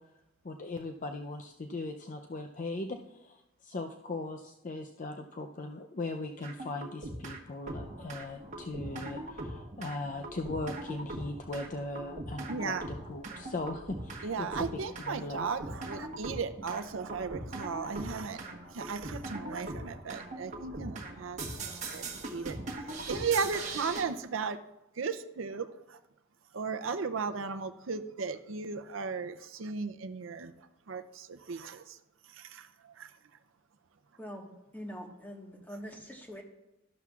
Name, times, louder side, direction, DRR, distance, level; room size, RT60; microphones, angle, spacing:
voice 1, 0.4-15.5, left 2 dB, 40° left, 4 dB, 0.5 m, -39 dB
sound 1, 6.4-7.4 7.7-24.0, right 2 dB, 35° right, 1.4 m, -41 dB
voice 2, 12.5-12.8 14.2-21.4 21.9-22.6 23.0-24.6 25.0-26.0 26.5-30.5 30.9-32.0 32.3-32.7 33.0-33.1, right 5 dB, 75° right, 9 dB, 0.6 m, -36 dB
voice 3, 34.2-36.4, equal, 10° left, 0 dB, 1.4 m, -44 dB
13.0 x 11.5 x 2.4 m, 0.91 s
head